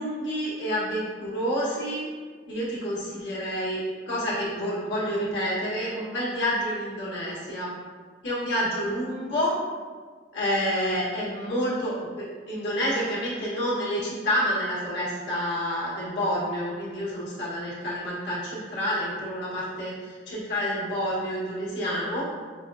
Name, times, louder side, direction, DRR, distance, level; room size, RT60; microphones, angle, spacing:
voice 1, 0.0-2.1 2.5-3.8 4.1-7.7 8.2-9.6 10.3-22.3, equal, 75° left, -7 dB, 1.3 m, -28 dB
5.9 x 2.3 x 2.6 m, 1.6 s
head